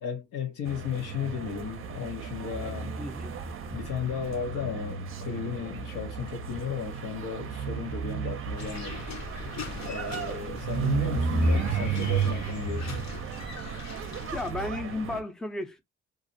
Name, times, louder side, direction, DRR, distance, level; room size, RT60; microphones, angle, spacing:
voice 1, 0.0-3.0 3.7-9.1 9.8-12.9, left 7 dB, 90° left, 0.9 m, -34 dB
sound 1, 0.7-15.2, right 5 dB, 45° right, 0.5 m, -33 dB
voice 2, 3.0-3.3 14.3-15.8, left 2 dB, ahead, 0.5 m, -33 dB
sound 2, 8.6-14.5, left 4 dB, 60° left, 0.8 m, -41 dB
2.5 x 2.0 x 2.5 m
cardioid pair, 90°, 30 cm